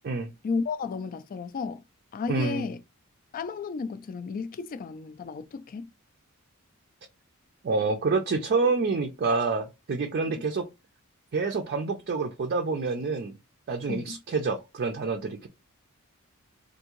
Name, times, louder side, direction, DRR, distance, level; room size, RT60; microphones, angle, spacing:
voice 1, 0.4-1.8 2.1-2.8 3.3-5.9 10.3-10.4 13.9-14.2, left 4 dB, 40° left, 0.3 m, -33 dB
voice 2, 2.3-2.6 7.6-10.7 11.3-13.3 13.7-15.5, right 4 dB, 45° right, 0.4 m, -27 dB
3.5 x 2.6 x 3.0 m
head